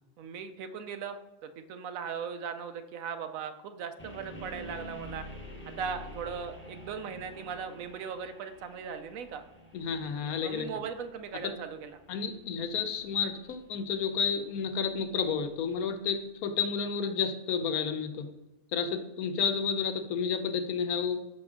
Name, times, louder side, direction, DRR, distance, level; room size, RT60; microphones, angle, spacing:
voice 1, 0.2-5.2 5.8-9.4 10.4-12.0, right 6 dB, 75° right, 9 dB, 1.0 m, -38 dB
sound 1, 4.0-15.9, left 1 dB, 10° left, 0.8 m, -49 dB
voice 2, 9.7-10.7 12.1-18.3 18.7-21.2, left 6 dB, 85° left, 8 dB, 1.1 m, -31 dB
6.4 x 4.9 x 3.6 m, 1.0 s
omnidirectional pair, 1.5 m